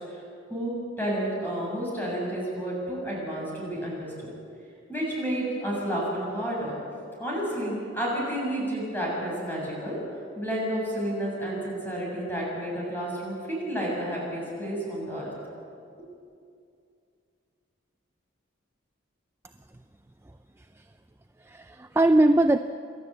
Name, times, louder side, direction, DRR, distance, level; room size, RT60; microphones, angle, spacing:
voice 1, 0.5-4.3 4.9-6.7 7.2-10.0 10.4-15.3 16.0-16.1, right 1 dB, 10° left, -4 dB, 7.2 m, -31 dB
voice 2, 21.4-22.6, right 1 dB, 10° right, 7 dB, 0.4 m, -21 dB
29.0 x 12.5 x 8.0 m, 2.4 s
head